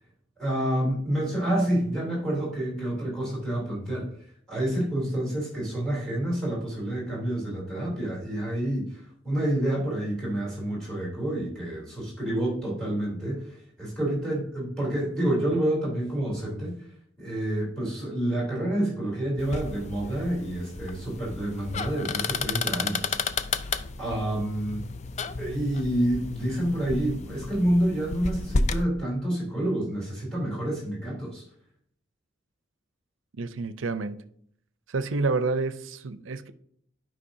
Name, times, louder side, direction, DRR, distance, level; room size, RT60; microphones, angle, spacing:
voice 1, 0.4-4.1 4.5-13.4 13.8-16.8 17.2-23.2 24.0-24.8 25.4-31.4, right 1 dB, 5° left, -5 dB, 3.2 m, -28 dB
sound 1, 19.4-28.8, left 4 dB, 35° left, 0.4 m, -32 dB
voice 2, 33.4-34.2 34.9-36.5, right 3 dB, 80° right, 12 dB, 0.5 m, -29 dB
11.5 x 5.2 x 2.7 m, 0.66 s
head